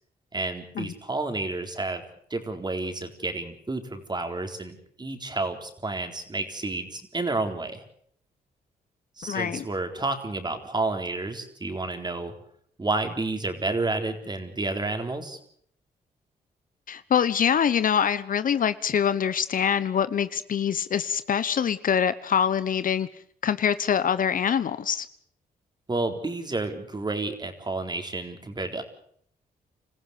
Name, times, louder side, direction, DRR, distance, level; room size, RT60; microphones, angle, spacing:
voice 1, 0.3-2.0 2.3-7.8 9.2-12.3 12.8-15.4 25.9-28.8, right 2 dB, 25° right, 6 dB, 4.0 m, -30 dB
voice 2, 9.2-9.6 16.9-23.1 23.4-25.1, left 8 dB, 60° left, 15 dB, 1.0 m, -24 dB
27.0 x 15.0 x 8.2 m, 0.64 s
cardioid pair, 70°, 16 cm